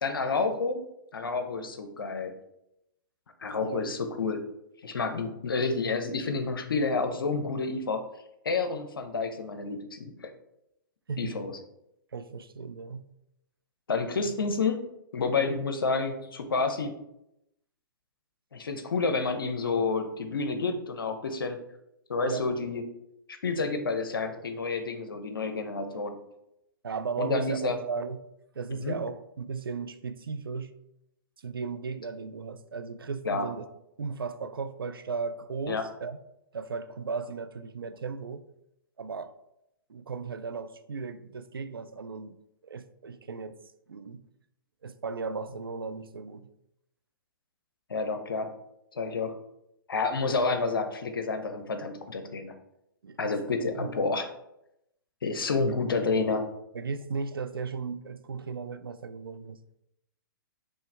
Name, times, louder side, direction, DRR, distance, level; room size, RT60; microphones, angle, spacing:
voice 1, 0.0-0.8 1.1-2.3 3.4-4.4 4.8-8.0 8.4-10.3 11.2-11.6 13.9-14.8 15.1-16.9 18.5-21.6 22.1-22.8 23.3-26.2 27.2-27.8 28.8-29.0 33.2-33.5 35.7-35.8 47.9-48.5 48.9-49.3 49.9-52.5 53.2-54.3 55.2-56.5, left 4 dB, 80° left, 0.7 m, -29 dB
voice 2, 3.6-4.0 11.1-11.4 12.1-13.1 22.3-22.5 26.8-28.3 28.5-30.8 31.4-33.7 34.0-36.2 36.5-38.4 39.0-39.3 39.9-42.4 42.6-43.6 43.9-44.3 44.8-46.5 53.0-53.4 53.8-53.9 56.7-59.6, right 5 dB, 85° right, 0.4 m, -36 dB
4.5 x 3.1 x 3.4 m
hypercardioid pair, 120°, 12 cm